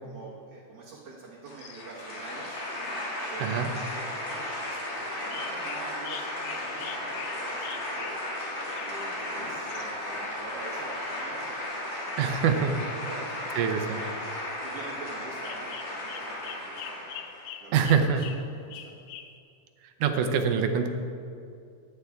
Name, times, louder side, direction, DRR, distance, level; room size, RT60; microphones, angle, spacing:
voice 1, 0.0-8.2 8.8-17.3 17.6-17.8 18.1-19.0, right 3 dB, 60° right, -4 dB, 2.0 m, -46 dB
sound 1, 1.5-17.5, left 1 dB, 40° left, 2.6 m, -35 dB
sound 2, 1.6-2.2 3.5-3.6 5.3-9.9 12.6-13.0 15.4-19.4, left 9 dB, 85° left, 2.3 m, -44 dB
voice 2, 12.2-12.7 13.6-14.0 17.7-18.3 20.0-20.9, right 6 dB, 80° right, 6 dB, 2.3 m, -24 dB
14.5 x 9.2 x 3.5 m, 2.4 s
omnidirectional pair, 3.7 m